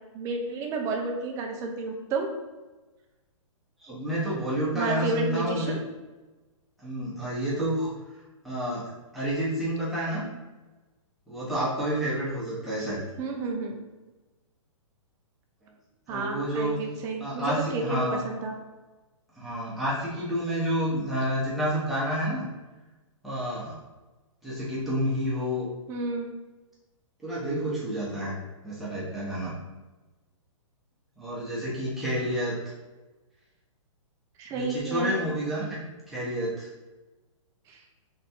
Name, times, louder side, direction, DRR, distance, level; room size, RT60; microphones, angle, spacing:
voice 1, 0.1-2.3 4.7-5.8 13.2-13.8 16.1-18.5 25.9-26.3 34.4-35.1 37.7-37.8, right 3 dB, 15° right, 1 dB, 0.5 m, -31 dB
voice 2, 3.8-5.8 6.8-7.9 8.4-8.8 9.1-10.3 11.3-13.0 16.1-16.7 17.2-18.2 19.4-22.4 23.2-23.8 24.4-25.7 27.2-28.4 28.6-29.5 31.2-32.5 34.5-35.8 36.1-36.7, equal, ahead, -10 dB, 1.0 m, -29 dB
3.5 x 2.5 x 4.3 m, 1.2 s
hypercardioid pair, 155°, 17 cm